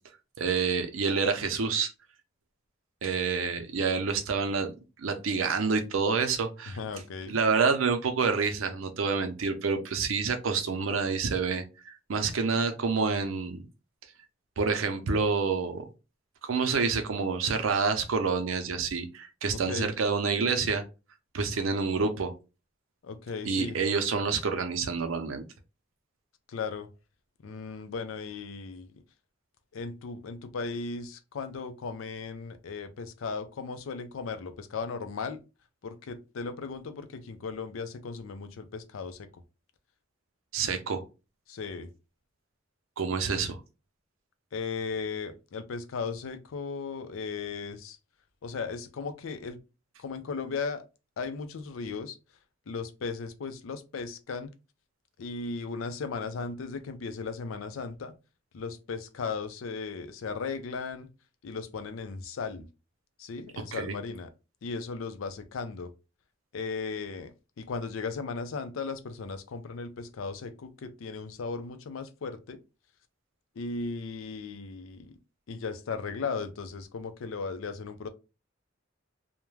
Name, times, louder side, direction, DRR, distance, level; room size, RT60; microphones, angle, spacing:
voice 1, 0.4-1.9 3.0-4.7 5.0-6.8 7.3-13.6 14.6-15.8 16.4-20.8 21.3-22.3 23.4-25.4 40.5-41.0 43.0-43.6 63.7-63.9, right 5 dB, 85° right, 0.6 m, -28 dB
voice 2, 6.7-7.4 19.5-19.9 23.0-23.8 26.5-26.9 27.4-29.0 29.7-35.4 35.8-39.3 41.5-41.9 44.5-48.0 48.4-49.6 50.0-50.8 51.2-52.2 52.7-54.5 55.2-58.1 58.5-61.1 61.4-62.7 63.2-64.3 64.6-65.9 66.5-72.6 73.6-75.2 75.5-78.1, left 4 dB, 85° left, 0.4 m, -36 dB
2.3 x 2.1 x 3.1 m
head